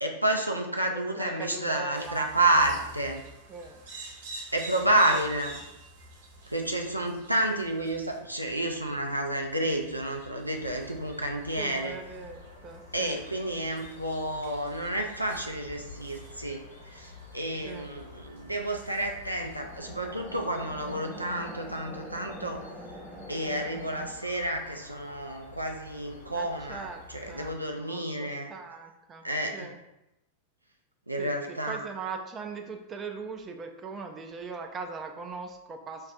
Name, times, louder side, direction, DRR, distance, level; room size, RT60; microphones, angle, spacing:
voice 1, 0.0-3.2 4.5-5.6 6.5-12.0 12.9-16.6 16.9-22.6 23.3-28.5 29.2-29.7 31.1-31.9, right 1 dB, 85° right, 2 dB, 0.4 m, -30 dB
voice 2, 0.9-2.8 3.5-3.8 5.1-5.2 11.6-13.2 17.6-17.9 26.3-27.5 27.8-29.8 31.2-36.1, right 4 dB, 25° right, 4 dB, 0.4 m, -40 dB
sound 1, 1.9-21.8, right 2 dB, 60° right, 1.0 m, -49 dB
sound 2, 10.5-27.5, left 3 dB, 70° left, 0.6 m, -49 dB
sound 3, 19.4-24.1, equal, ahead, 0.9 m, -44 dB
5.3 x 2.4 x 2.4 m, 0.92 s
figure-of-eight pair, 90°, 0 cm